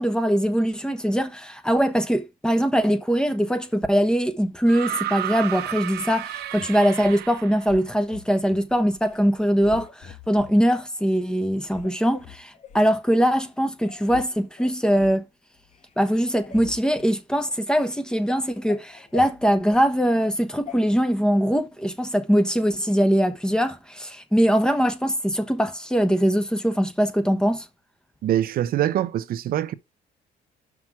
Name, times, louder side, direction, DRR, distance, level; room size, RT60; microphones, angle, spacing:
voice 1, 0.0-15.2 16.0-27.7, equal, 5° left, 1.1 m, -22 dB
sound 1, 4.7-7.7 9.0-9.1, right 12 dB, 75° right, 1.0 m, -32 dB
sound 2, 6.5-7.2 7.7-8.6 9.0-9.3 9.6-10.5 11.1-11.2 11.7-12.8 13.4-13.5 13.8-14.3 14.6-15.2 15.6-18.0 18.4-19.9 20.7-20.8, left 8 dB, 45° left, 1.3 m, -43 dB
voice 2, 28.2-29.7, right 12 dB, 60° right, 0.7 m, -24 dB
6.0 x 5.8 x 4.8 m
cardioid pair, 110°, 17 cm